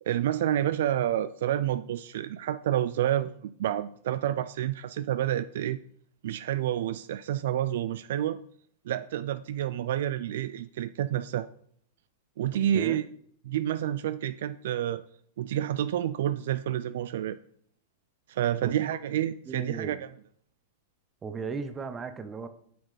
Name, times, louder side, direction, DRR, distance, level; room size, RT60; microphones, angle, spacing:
voice 1, 0.0-5.8 6.2-8.4 8.9-11.5 12.4-13.0 13.5-15.0 15.4-17.4 18.3-20.0, right 11 dB, 70° right, 13 dB, 0.3 m, -29 dB
voice 2, 19.5-20.0 21.2-22.5, right 5 dB, 20° right, 10 dB, 0.8 m, -36 dB
7.6 x 6.5 x 3.2 m, 0.63 s
hypercardioid pair, 110°, 0 cm